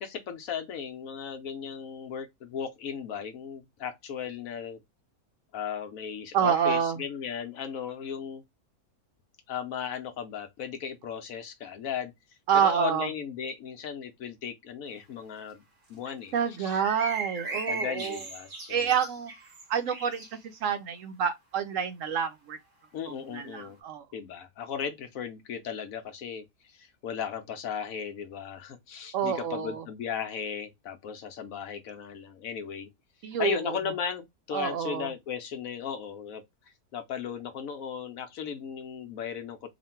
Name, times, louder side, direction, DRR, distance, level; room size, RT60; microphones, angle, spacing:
voice 1, 0.0-4.8 5.5-8.4 9.5-12.1 12.5-15.6 15.9-16.3 16.6-16.8 17.7-18.9 22.9-23.8 24.1-32.9 33.4-36.4 36.9-39.7, left 7 dB, 70° left, 1.1 m, -36 dB
voice 2, 6.3-7.0 12.5-13.1 16.3-18.2 18.7-19.3 19.7-20.2 20.6-22.6 23.1-24.1 29.1-29.8 33.2-33.8 34.5-35.1, right 8 dB, 70° right, 0.9 m, -28 dB
sound 1, 16.7-20.3, right 3 dB, 45° right, 0.8 m, -37 dB
3.0 x 2.5 x 4.3 m
omnidirectional pair, 1.6 m